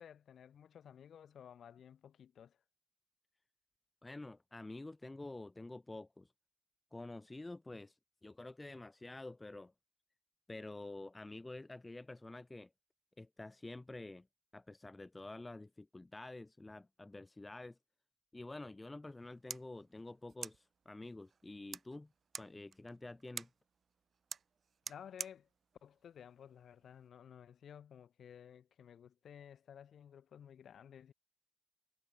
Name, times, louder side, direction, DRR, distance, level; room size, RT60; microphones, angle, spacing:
voice 1, 0.0-2.6 24.9-25.5 25.8-31.1, left 8 dB, 75° left, 2.6 m, -55 dB
voice 2, 4.0-6.3 6.9-9.7 10.5-12.7 13.2-14.3 14.5-17.8 18.3-22.1 22.4-23.5, left 2 dB, 15° left, 0.5 m, -49 dB
sound 1, 19.1-27.1, right 6 dB, 50° right, 1.5 m, -51 dB
wide cardioid pair, 135°, 0 cm